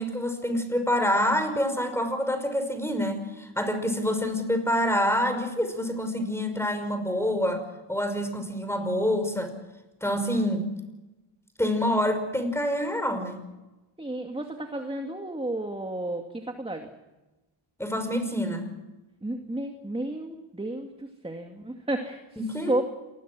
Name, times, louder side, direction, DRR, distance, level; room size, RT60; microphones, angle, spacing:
voice 1, 0.0-9.5 10.0-10.7 11.6-13.4 17.8-18.7 22.4-22.8, equal, 5° left, 8 dB, 5.6 m, -27 dB
voice 2, 14.0-16.9 19.2-22.2 22.7-22.8, right 1 dB, 10° right, 4 dB, 2.4 m, -32 dB
28.0 x 21.5 x 6.3 m, 1.1 s
cardioid pair, 100°, 49 cm